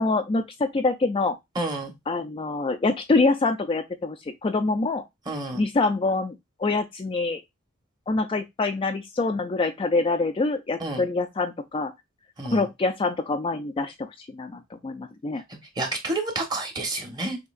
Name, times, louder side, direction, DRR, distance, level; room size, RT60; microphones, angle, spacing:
voice 1, 0.0-1.4 2.1-5.0 5.5-7.4 8.1-11.9 12.5-15.4, left 3 dB, 25° left, 0.3 m, -25 dB
voice 2, 1.6-1.9 5.3-5.6 10.8-11.0 12.4-12.6 15.8-17.4, right 2 dB, 20° right, 1.1 m, -29 dB
6.2 x 2.9 x 2.4 m
head